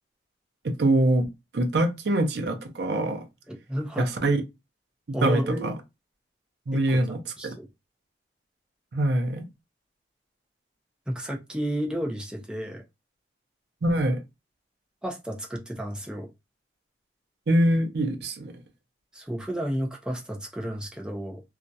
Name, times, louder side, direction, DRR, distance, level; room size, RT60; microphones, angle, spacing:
voice 1, 0.6-3.2 4.0-4.4 5.1-5.7 6.7-7.5 8.9-9.5 13.8-14.2 17.5-18.6, right 1 dB, 65° right, 0.5 m, -24 dB
voice 2, 3.5-4.1 5.1-5.7 6.7-7.7 11.1-12.8 15.0-16.3 19.1-21.4, equal, 5° right, 0.4 m, -32 dB
2.3 x 2.0 x 2.6 m
head